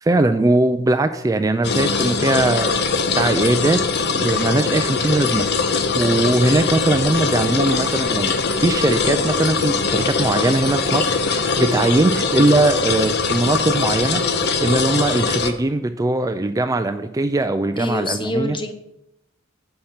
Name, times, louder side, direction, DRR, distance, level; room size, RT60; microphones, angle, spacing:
voice 1, 0.0-2.7 3.2-3.8 4.1-18.6, right 2 dB, 15° right, 8 dB, 0.3 m, -20 dB
sound 1, 1.6-15.5, left 4 dB, 50° left, 0.7 m, -21 dB
voice 2, 17.8-18.7, left 1 dB, 25° left, 7 dB, 0.8 m, -26 dB
6.5 x 5.7 x 7.2 m, 0.85 s
head